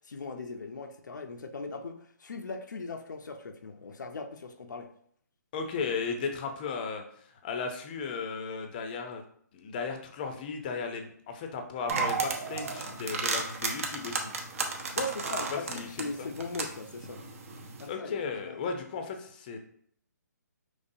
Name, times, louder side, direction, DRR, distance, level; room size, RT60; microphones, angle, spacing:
voice 1, 0.1-4.9 15.0-17.2 17.8-18.6, left 3 dB, 85° left, 6 dB, 0.5 m, -39 dB
voice 2, 5.5-7.0 7.4-9.2 9.5-14.3 15.5-16.3 17.9-19.6, left 5 dB, 30° left, 5 dB, 0.6 m, -35 dB
sound 1, 11.9-17.9, right 4 dB, 50° right, 0.8 m, -34 dB
5.4 x 3.2 x 2.6 m, 0.63 s
hypercardioid pair, 160°, 10 cm